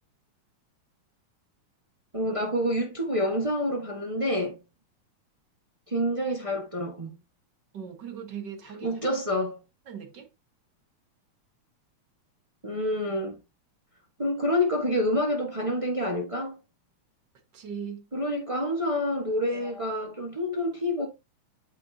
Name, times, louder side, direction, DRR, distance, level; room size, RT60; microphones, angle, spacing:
voice 1, 2.1-4.6 5.9-7.1 8.8-9.6 12.6-13.3 14.2-16.6 18.1-21.1, left 1 dB, 60° right, 0.3 m, -27 dB
voice 2, 7.7-9.0 9.9-10.3 17.5-18.1, right 7 dB, 45° right, 1.7 m, -39 dB
8.6 x 5.8 x 2.8 m
omnidirectional pair, 3.4 m